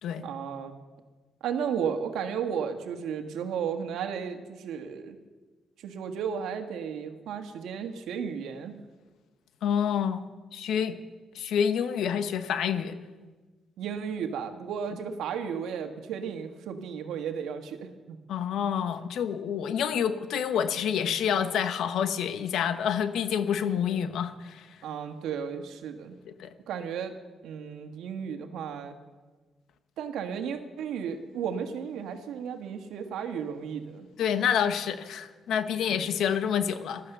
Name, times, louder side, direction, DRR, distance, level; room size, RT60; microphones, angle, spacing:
voice 1, 0.2-0.8 1.4-5.2 5.8-8.8 13.8-18.2 24.8-26.2 26.7-27.1 27.4-28.9 30.0-34.1 35.9-36.0, right 7 dB, 80° right, 6 dB, 1.5 m, -34 dB
voice 2, 9.6-10.2 10.5-11.0 11.3-13.0 18.3-24.7 26.4-26.5 34.2-37.0, left 8 dB, 75° left, 10 dB, 1.0 m, -28 dB
15.5 x 12.0 x 6.8 m, 1.3 s
cardioid pair, 90°, 0 cm